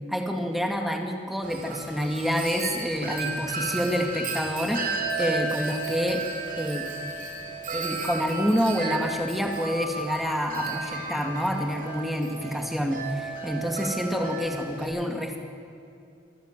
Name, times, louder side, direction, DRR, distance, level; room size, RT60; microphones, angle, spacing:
voice 1, 0.1-6.2 6.6-6.9 7.7-15.4, equal, ahead, 2 dB, 2.2 m, -28 dB
Wind chime, 1.4-14.8, right 3 dB, 50° right, 3.7 m, -33 dB
26.0 x 14.5 x 7.5 m, 2.6 s
head